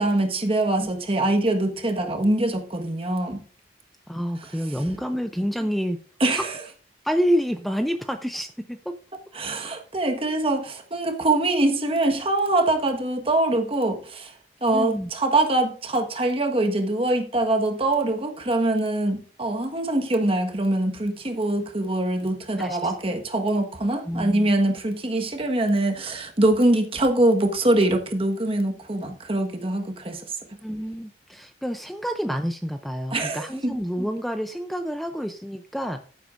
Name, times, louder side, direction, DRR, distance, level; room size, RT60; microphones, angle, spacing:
voice 1, 0.0-3.4 4.4-4.5 4.8-4.9 6.2-6.6 9.3-14.3 14.6-30.3 33.1-33.8, right 2 dB, 35° right, 1.4 m, -23 dB
voice 2, 4.1-6.0 6.3-6.4 7.0-8.9 14.7-15.1 22.6-22.9 24.1-24.5 30.6-36.0, equal, ahead, 0.5 m, -28 dB
14.5 x 8.0 x 2.5 m
head